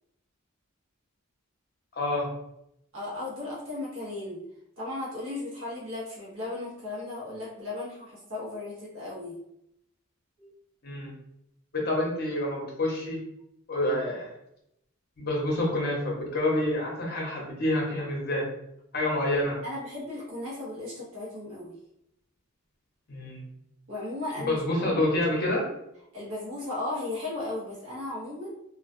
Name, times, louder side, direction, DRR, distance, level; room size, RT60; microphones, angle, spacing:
voice 1, 1.9-2.3 10.8-11.1 11.7-13.2 13.7-14.3 15.2-18.4 18.9-19.6 23.1-23.5 24.4-25.6, left 1 dB, 45° left, -2 dB, 0.8 m, -28 dB
voice 2, 2.9-4.4 4.8-9.4 10.4-10.5 19.6-21.7 23.9-25.0 26.1-28.5, left 2 dB, 65° right, -6 dB, 0.8 m, -36 dB
2.4 x 2.2 x 2.5 m, 0.80 s
head